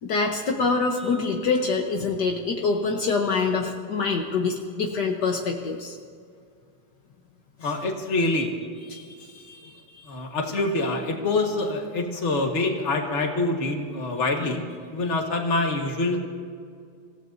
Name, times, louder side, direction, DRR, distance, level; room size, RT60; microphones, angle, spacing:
voice 1, 0.0-6.0 8.9-10.1, left 4 dB, 65° left, 2 dB, 1.6 m, -26 dB
voice 2, 7.6-8.5 10.1-14.6 14.9-16.2, left 2 dB, 40° left, 2 dB, 1.7 m, -25 dB
27.0 x 16.0 x 2.7 m, 2.2 s
omnidirectional pair, 2.0 m